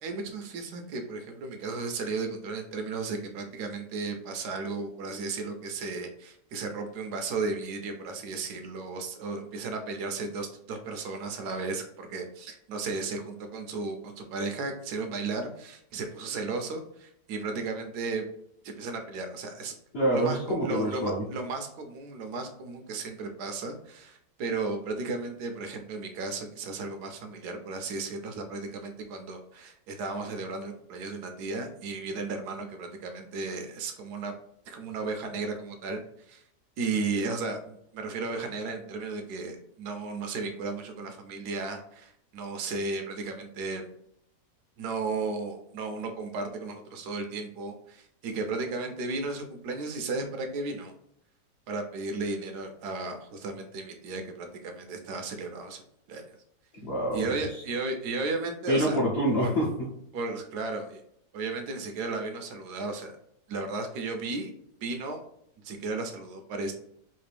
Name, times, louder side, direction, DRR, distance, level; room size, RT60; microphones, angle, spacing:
voice 1, 0.0-18.3 18.6-19.7 20.1-34.3 34.7-36.4 36.8-43.9 44.8-50.9 51.7-55.8 56.1-56.2 57.1-59.0 59.4-59.5 60.1-61.0 61.3-63.2 63.5-64.5 64.8-65.2 65.6-66.7, right 3 dB, 75° right, 5 dB, 1.1 m, -34 dB
voice 2, 19.9-21.3 56.8-57.6 58.7-59.9, right 1 dB, 50° left, -5 dB, 0.8 m, -27 dB
3.3 x 2.6 x 3.3 m, 0.73 s
omnidirectional pair, 1.8 m